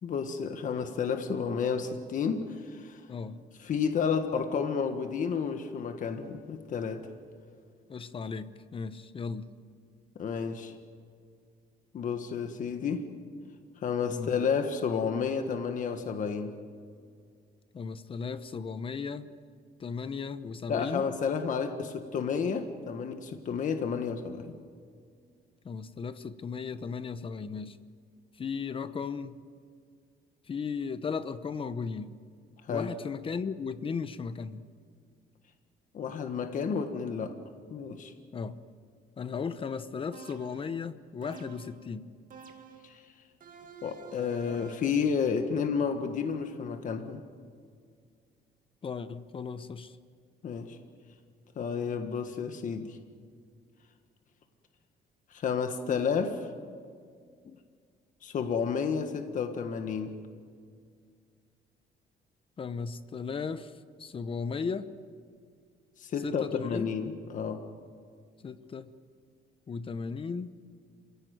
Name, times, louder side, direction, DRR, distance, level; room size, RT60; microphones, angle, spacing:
voice 1, 0.0-3.0 3.6-7.0 10.1-10.7 11.9-13.1 13.8-16.5 20.7-24.5 32.7-32.9 35.9-37.3 37.7-38.1 42.8-42.9 43.8-47.2 50.4-50.8 51.6-53.0 55.3-56.5 58.2-60.1 66.0-67.6, left 6 dB, 50° left, 7 dB, 1.6 m, -31 dB
voice 2, 3.1-3.4 7.9-9.5 14.1-14.3 17.7-19.3 19.8-21.1 25.6-27.8 28.4-29.4 30.5-32.1 32.7-34.6 38.3-38.6 39.2-42.1 48.8-50.0 57.4-57.6 62.6-63.7 64.0-64.9 66.2-66.9 68.4-68.9 69.7-70.6, left 5 dB, 30° left, 13 dB, 0.9 m, -36 dB
sound 1, 40.1-40.8 41.2-41.8 42.3-42.9 43.4-45.0, right 6 dB, 50° right, 2.4 m, -50 dB
27.5 x 17.0 x 9.4 m, 2.1 s
cardioid pair, 150°, 17 cm